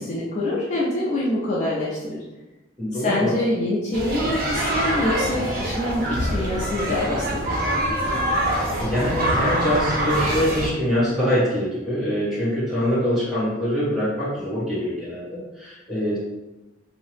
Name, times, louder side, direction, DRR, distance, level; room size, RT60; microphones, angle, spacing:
voice 1, 0.0-2.2 2.9-7.7, left 1 dB, 40° left, -6 dB, 0.4 m, -25 dB
voice 2, 2.8-3.3 8.5-16.2, equal, ahead, -11 dB, 1.1 m, -24 dB
sound 1, 3.9-10.7, right 1 dB, 50° right, 0.6 m, -24 dB
2.7 x 2.0 x 3.1 m, 1.0 s
head